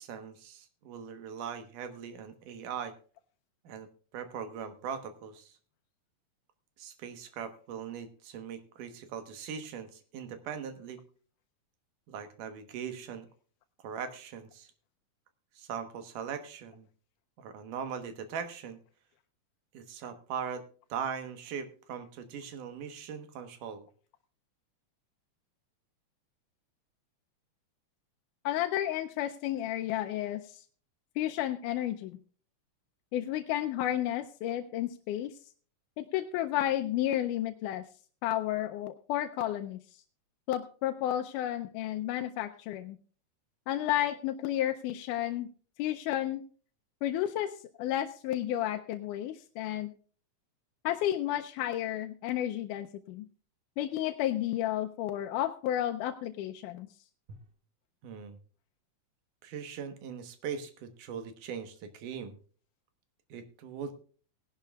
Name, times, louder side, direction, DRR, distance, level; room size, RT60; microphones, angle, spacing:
voice 1, 0.0-2.9 3.6-3.9 4.1-5.6 6.8-11.0 12.1-13.3 13.8-14.7 15.6-16.9 17.4-18.8 19.7-20.6 20.9-23.9 57.3-57.4 58.0-58.4 59.4-62.4 63.3-63.9, right 7 dB, 85° right, 8 dB, 2.8 m, -40 dB
voice 2, 28.5-30.6 31.2-32.2 33.1-35.4 36.0-37.8 38.2-39.8 40.5-43.0 43.7-45.5 45.8-46.4 47.0-49.9 50.8-53.3 53.8-56.9, left 12 dB, 90° left, 6 dB, 2.2 m, -32 dB
18.5 x 11.5 x 2.3 m, 0.42 s
omnidirectional pair, 3.6 m